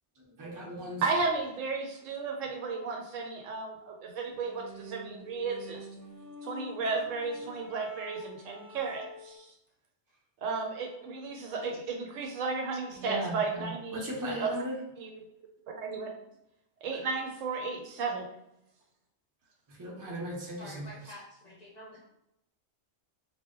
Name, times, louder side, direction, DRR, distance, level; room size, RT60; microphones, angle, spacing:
voice 1, 0.4-1.0 12.9-14.7 19.8-20.9, equal, 30° right, -3 dB, 0.3 m, -37 dB
voice 2, 1.0-5.8 6.4-9.5 10.4-14.5 15.0-15.1 15.8-16.1 16.8-18.3, right 4 dB, 85° right, 2 dB, 1.0 m, -34 dB
sound 1, 4.3-9.4, left 1 dB, 50° right, 0.7 m, -47 dB
voice 3, 20.5-22.1, left 1 dB, 55° left, -5 dB, 0.4 m, -48 dB
2.1 x 2.0 x 3.6 m, 0.82 s
omnidirectional pair, 1.3 m